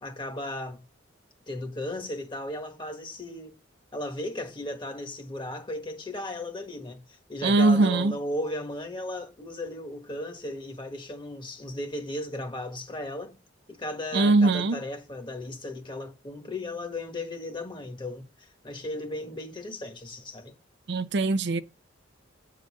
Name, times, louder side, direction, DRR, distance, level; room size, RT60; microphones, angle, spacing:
voice 1, 0.0-0.8 1.5-3.6 3.9-13.4 13.7-20.6, left 1 dB, 25° left, 1.4 m, -36 dB
voice 2, 7.4-8.1 14.1-14.8 20.9-21.6, right 3 dB, 60° right, 0.5 m, -21 dB
8.8 x 3.8 x 6.2 m
head